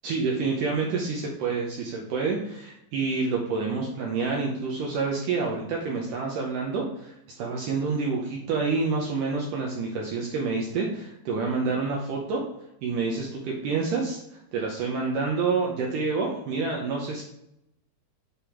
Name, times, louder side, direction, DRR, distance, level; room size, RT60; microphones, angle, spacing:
voice 1, 0.0-12.4 12.8-14.2 14.5-17.2, right 4 dB, 80° right, -1 dB, 1.9 m, -28 dB
6.7 x 5.3 x 4.4 m, 0.83 s
omnidirectional pair, 4.8 m